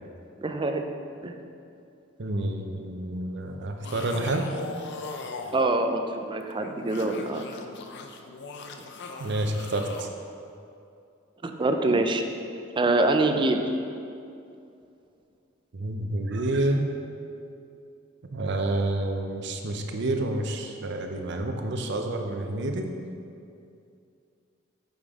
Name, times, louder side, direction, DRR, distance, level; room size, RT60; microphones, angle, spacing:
voice 1, 0.4-0.8 1.2-1.4 5.5-7.5 11.4-12.2 12.8-13.7, right 2 dB, 25° right, 6 dB, 0.4 m, -25 dB
voice 2, 2.2-4.5 9.2-10.1 15.7-16.9 18.3-22.9, right 2 dB, 65° right, 4 dB, 0.6 m, -29 dB
sound 1, 3.8-5.7 6.4-10.1, left 4 dB, 60° left, 0.5 m, -39 dB
9.0 x 5.1 x 3.6 m, 2.5 s
head